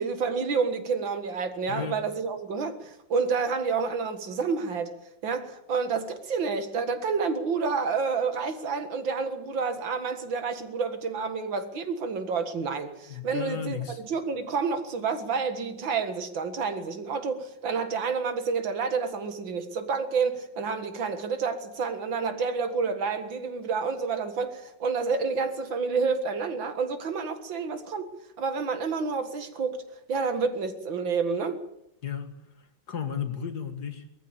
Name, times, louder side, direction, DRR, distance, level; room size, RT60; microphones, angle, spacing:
voice 1, 0.0-4.9 5.2-28.1 28.4-29.8 30.1-31.6, right 5 dB, 75° right, 2.5 m, -29 dB
voice 2, 1.7-2.0 13.1-14.0 32.0-32.4 32.9-34.1, left 7 dB, 55° left, 2.2 m, -34 dB
20.5 x 14.5 x 8.8 m
omnidirectional pair, 2.1 m